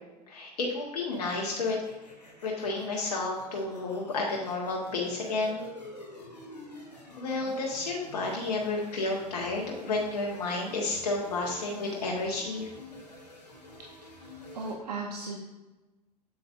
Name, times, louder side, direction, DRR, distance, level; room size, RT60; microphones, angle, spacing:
voice 1, 0.3-1.8 2.4-5.6 7.2-12.7, left 3 dB, 70° left, -1 dB, 1.3 m, -31 dB
sound 1, 1.1-14.7, left 1 dB, 90° left, 1.7 m, -48 dB
voice 2, 14.1-15.4, right 3 dB, 75° right, 0 dB, 0.9 m, -37 dB
7.7 x 7.7 x 2.5 m, 1.1 s
figure-of-eight pair, 80°, 21 cm